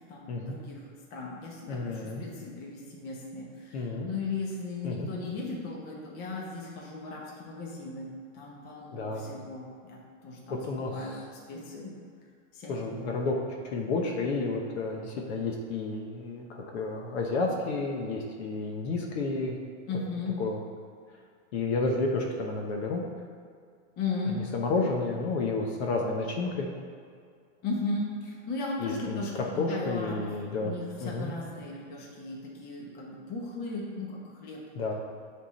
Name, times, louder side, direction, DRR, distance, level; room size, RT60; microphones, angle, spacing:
voice 1, 0.0-8.1 8.3-11.2 11.5-11.9 12.5-13.0 19.9-20.3 24.0-24.4 27.6-29.4 29.7-34.6, left 3 dB, 25° left, -3 dB, 1.0 m, -36 dB
voice 2, 1.7-2.2 3.7-4.1 4.8-5.1 8.9-9.4 10.5-11.2 12.7-13.3 13.6-19.6 20.4-20.6 21.5-23.0 24.3-26.7 28.8-29.2 29.5-30.7 31.0-31.3 34.8-34.9, left 3 dB, 55° left, 1 dB, 1.0 m, -31 dB
8.8 x 3.7 x 4.2 m, 2.1 s
supercardioid pair, 170°, 38 cm